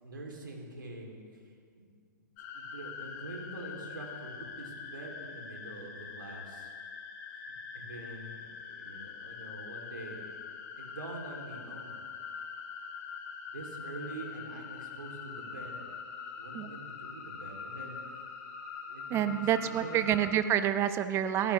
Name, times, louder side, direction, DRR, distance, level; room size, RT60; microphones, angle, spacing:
voice 1, 0.0-1.2 1.7-1.9 2.5-6.7 7.4-10.2 10.7-11.9 13.5-15.8 16.4-18.0 18.9-20.1, right 2 dB, 85° right, 0 dB, 3.5 m, -45 dB
sound 1, 2.4-20.3, left 6 dB, 40° left, 2.4 m, -44 dB
voice 2, 19.1-21.5, right 10 dB, 25° right, 10 dB, 0.9 m, -28 dB
22.0 x 15.0 x 3.5 m, 2.1 s
hypercardioid pair, 125°, 11 cm